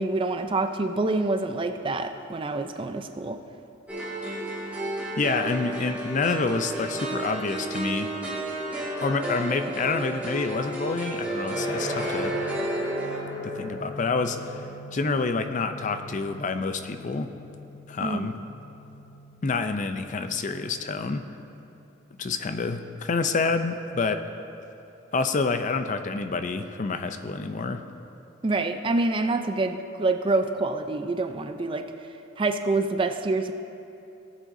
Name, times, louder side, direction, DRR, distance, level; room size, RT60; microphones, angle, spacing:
voice 1, 0.0-3.4 18.0-18.3 28.4-31.9 32.4-33.5, right 2 dB, 25° right, 7 dB, 0.4 m, -26 dB
sound 1, 3.9-13.2, right 2 dB, 5° right, 1.6 m, -32 dB
voice 2, 5.2-8.1 9.0-12.4 13.4-14.6 14.9-17.3 17.9-18.4 19.4-21.2 22.2-24.2 25.1-27.8, left 4 dB, 40° left, 9 dB, 0.4 m, -28 dB
sound 2, 11.5-22.4, left 1 dB, 75° left, 2.5 m, -39 dB
18.5 x 7.4 x 2.6 m, 2.8 s
head